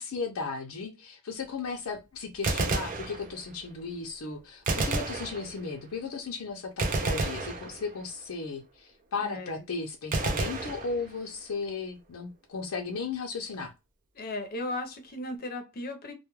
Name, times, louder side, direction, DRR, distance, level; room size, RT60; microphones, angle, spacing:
voice 1, 0.0-13.7, left 4 dB, 85° left, 0.5 m, -35 dB
Gunshot gunfire, 2.3-3.7 4.7-5.9 6.8-8.2 10.1-11.5, right 3 dB, 40° right, 0.4 m, -31 dB
voice 2, 9.2-9.6 14.1-16.1, left 2 dB, 45° left, 0.6 m, -36 dB
2.2 x 2.1 x 2.9 m
head